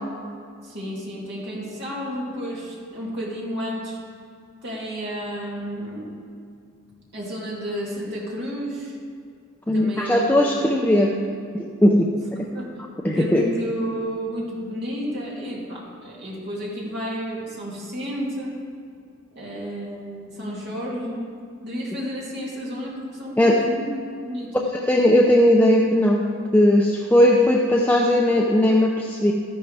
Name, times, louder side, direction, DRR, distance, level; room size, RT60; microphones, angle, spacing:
voice 1, 0.6-4.0 4.6-6.1 7.1-8.9 9.7-10.7 12.4-12.8 13.1-18.6 19.3-21.2 21.6-24.6, equal, 55° right, -5 dB, 2.7 m, -31 dB
voice 2, 9.7-11.2 11.5-12.1 13.0-13.4 23.4-23.6 24.8-26.3 26.5-29.3, left 1 dB, 10° left, -1 dB, 0.5 m, -18 dB
13.0 x 11.0 x 3.4 m, 2.3 s
head